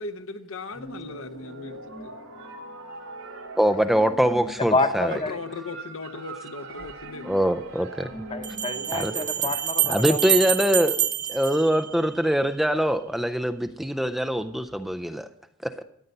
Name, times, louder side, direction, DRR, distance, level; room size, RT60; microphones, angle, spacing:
voice 1, 0.0-2.1 5.1-7.3, left 3 dB, 65° left, 9 dB, 0.9 m, -37 dB
sound 1, 0.7-9.6, right 2 dB, 80° right, 3.2 m, -41 dB
voice 2, 3.6-5.2 7.2-8.1 8.9-9.1 9.9-15.3 15.6-15.7, equal, ahead, 8 dB, 0.4 m, -23 dB
voice 3, 4.7-5.4 8.3-10.2, left 2 dB, 25° left, 8 dB, 0.9 m, -27 dB
sound 2, 6.8-6.9 8.4-12.4, right 11 dB, 35° right, 1.3 m, -27 dB
13.5 x 9.2 x 5.4 m, 0.72 s
head